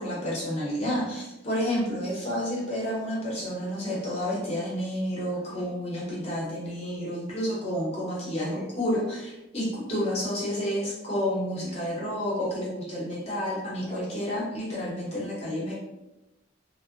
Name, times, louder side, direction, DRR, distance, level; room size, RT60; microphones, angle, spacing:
voice 1, 0.0-15.7, equal, 30° left, -6 dB, 0.8 m, -30 dB
2.6 x 2.1 x 2.4 m, 0.93 s
head